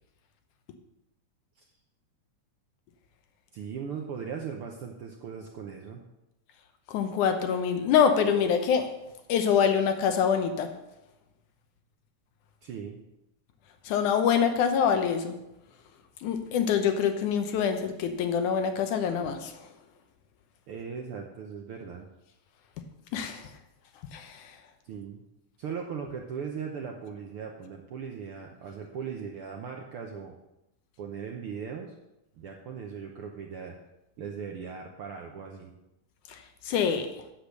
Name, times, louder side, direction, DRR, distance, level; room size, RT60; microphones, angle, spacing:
voice 1, 3.5-6.0 12.6-13.0 20.7-22.1 24.8-25.2 25.6-30.3 31.0-31.9 32.3-33.8 34.2-35.7, right 6 dB, 70° right, 2 dB, 1.3 m, -38 dB
voice 2, 6.9-8.9 9.3-10.7 13.8-15.3 16.2-19.7 23.1-23.5 24.1-24.6 36.3-37.1, left 7 dB, 80° left, 7 dB, 2.5 m, -25 dB
8.6 x 8.1 x 6.7 m, 0.91 s
omnidirectional pair, 3.5 m